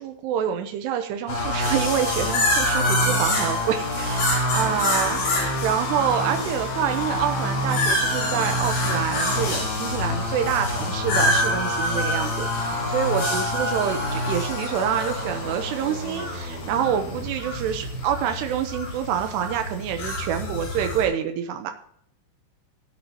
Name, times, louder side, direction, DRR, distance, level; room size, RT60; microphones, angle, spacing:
voice 1, 0.0-21.7, right 9 dB, 90° right, 6 dB, 2.4 m, -27 dB
sound 1, 1.3-21.0, left 1 dB, 60° left, 6.7 m, -26 dB
17.5 x 8.9 x 2.9 m, 0.66 s
omnidirectional pair, 6.0 m